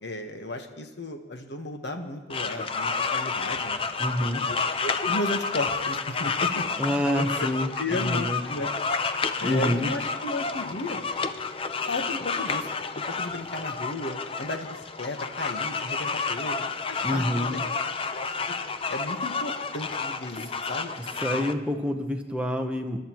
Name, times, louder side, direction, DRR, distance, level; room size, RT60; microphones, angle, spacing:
voice 1, 0.0-3.8 4.2-7.5 7.8-8.7 9.4-11.0 11.9-12.7 13.2-17.6 18.1-18.3 18.9-20.9, left 2 dB, 65° left, 5 dB, 1.2 m, -34 dB
sound 1, 2.3-21.5, left 5 dB, 30° left, 0.4 m, -30 dB
voice 2, 4.0-4.4 6.8-8.4 9.4-9.9 17.0-17.6 21.2-23.1, left 1 dB, 5° right, 3 dB, 0.8 m, -27 dB
23.0 x 12.0 x 3.0 m, 1.2 s
head